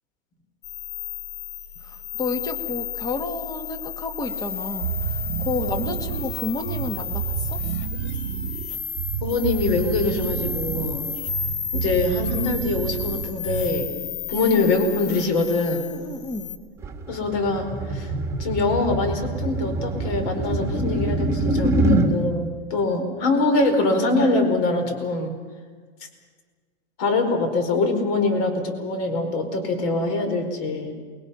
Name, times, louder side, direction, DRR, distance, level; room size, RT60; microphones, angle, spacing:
sound 1, 0.6-16.6, left 9 dB, 70° left, 1.9 m, -33 dB
voice 1, 1.8-7.6 15.8-16.6, left 3 dB, 10° left, 7 dB, 1.9 m, -31 dB
sound 2, 4.8-14.0, right 9 dB, 85° right, 1.6 m, -30 dB
voice 2, 9.2-11.1 11.7-13.9 14.3-15.9 17.1-18.1 18.4-25.3 27.0-30.9, left 3 dB, 45° left, 6 dB, 4.8 m, -24 dB
sound 3, 16.8-22.1, right 1 dB, 10° right, 2.1 m, -24 dB
28.5 x 22.0 x 5.7 m, 1.5 s
supercardioid pair, 145°, 34 cm